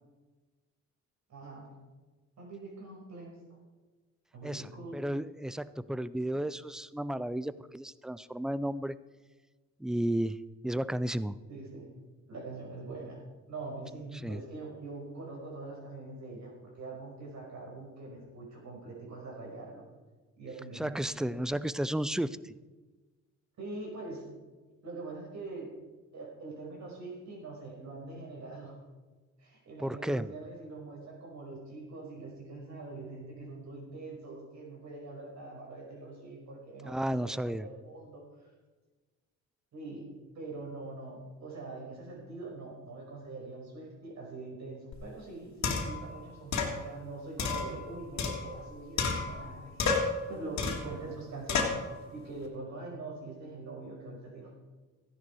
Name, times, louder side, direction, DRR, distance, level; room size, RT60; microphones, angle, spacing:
voice 1, 1.3-1.7 2.4-3.6 4.3-5.0 11.5-11.9 12.3-13.2 13.5-19.8 20.4-21.4 23.6-24.3 24.8-25.7 26.1-28.8 29.4-38.5 39.7-40.1 40.3-51.9 52.1-54.5, right 3 dB, 65° right, -1 dB, 5.4 m, -43 dB
voice 2, 4.4-9.0 9.8-10.4 10.6-11.4 14.2-14.4 20.7-22.5 29.8-30.3 36.8-37.7, right 1 dB, ahead, 16 dB, 0.4 m, -33 dB
sound 1, 44.9-45.0 45.6-46.0 46.5-46.8 47.4-48.7 49.0-49.5 49.8-50.2 50.6-50.9 51.5-51.8, left 4 dB, 65° left, 2.4 m, -30 dB
15.0 x 10.5 x 4.7 m, 1.3 s
cardioid pair, 90°, 30 cm